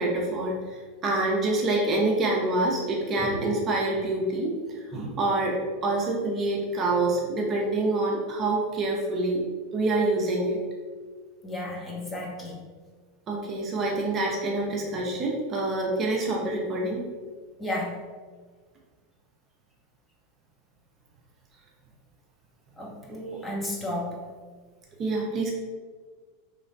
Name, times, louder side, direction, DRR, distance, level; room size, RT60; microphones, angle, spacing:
voice 1, 0.0-9.4 9.7-10.6 13.3-17.0 25.0-25.5, right 2 dB, 35° right, -2 dB, 0.8 m, -26 dB
voice 2, 11.4-12.6 17.6-18.0 22.8-24.2, left 1 dB, 15° left, -4 dB, 1.2 m, -33 dB
4.0 x 3.4 x 2.6 m, 1.5 s
hypercardioid pair, 90°, 0 cm